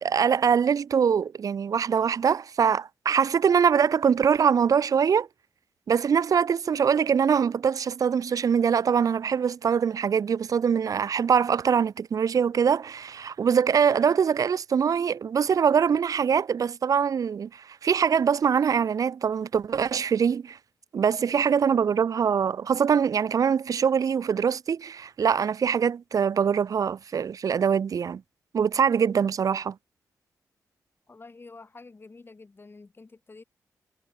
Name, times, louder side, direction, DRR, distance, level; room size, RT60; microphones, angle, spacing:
voice 1, 0.0-5.3 5.9-20.6 20.9-28.2 28.5-29.8, right 7 dB, 60° right, 0.8 m, -23 dB
voice 2, 31.1-33.4, left 3 dB, 35° left, 5.8 m, -48 dB
cardioid pair, 60°, 7 cm